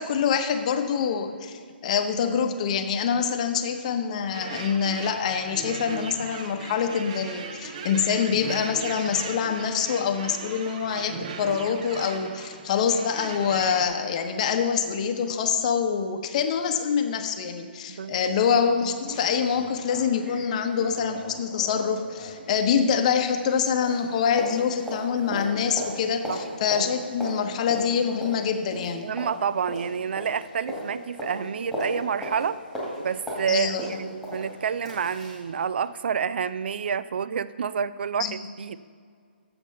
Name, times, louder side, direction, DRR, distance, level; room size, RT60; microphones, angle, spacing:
voice 1, 0.0-29.1 33.5-33.8 38.2-38.4, left 7 dB, 40° left, 6 dB, 0.8 m, -25 dB
sound 1, 4.3-13.9, right 5 dB, 40° right, 0.7 m, -38 dB
voice 2, 17.9-18.3 26.3-26.4 29.0-32.6 33.0-38.8, right 7 dB, 65° right, 16 dB, 0.3 m, -29 dB
sound 2, 18.2-18.3 18.6-18.7 19.0-23.6 23.8-35.4 35.8-35.9, equal, 5° right, 2.1 m, -37 dB
8.1 x 6.9 x 5.4 m, 2.1 s
hypercardioid pair, 150°, 6 cm